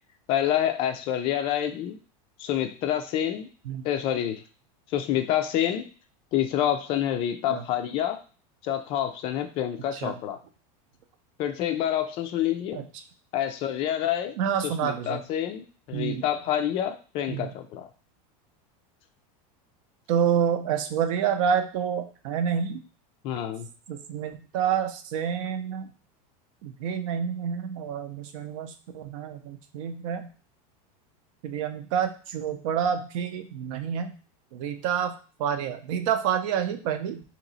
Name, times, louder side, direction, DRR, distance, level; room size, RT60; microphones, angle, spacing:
voice 1, 0.3-2.0 2.4-3.5 3.8-4.4 4.9-5.9 6.3-8.2 8.6-10.4 11.4-12.8 13.3-14.4 14.6-17.9 23.2-23.7, left 11 dB, 30° left, 7 dB, 0.4 m, -27 dB
voice 2, 14.4-15.2 15.9-16.2 17.3-17.5 20.1-22.8 23.9-25.9 26.6-30.3 31.4-34.2 34.5-35.1 35.4-37.2, right 8 dB, 60° right, 8 dB, 0.6 m, -28 dB
3.0 x 2.8 x 4.0 m, 0.37 s
supercardioid pair, 170°, 19 cm